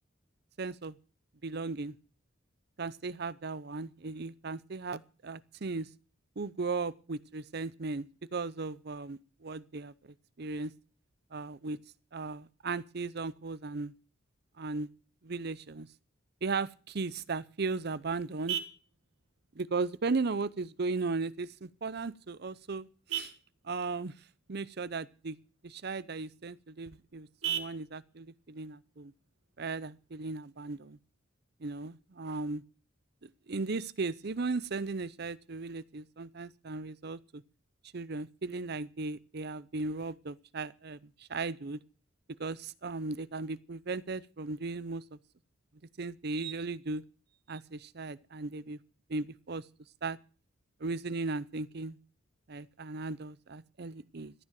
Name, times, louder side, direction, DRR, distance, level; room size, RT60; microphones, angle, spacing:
voice 1, 0.6-0.9 1.4-1.9 2.8-5.9 6.4-8.1 8.3-10.7 11.3-11.8 12.1-13.9 14.6-14.9 15.2-15.9 16.4-18.6 19.6-23.3 23.6-24.1 24.5-25.4 25.6-29.1 29.6-31.0 31.6-32.6 33.2-37.4 37.9-41.8 42.4-45.2 46.0-47.0 47.5-48.8 49.1-49.6 50.0-50.2 50.8-52.0 52.5-54.3, right 3 dB, 55° right, 0.7 m, -36 dB
Vehicle horn car horn honking, 17.2-30.2, right 10 dB, 85° right, 1.7 m, -44 dB
14.0 x 9.3 x 7.6 m
head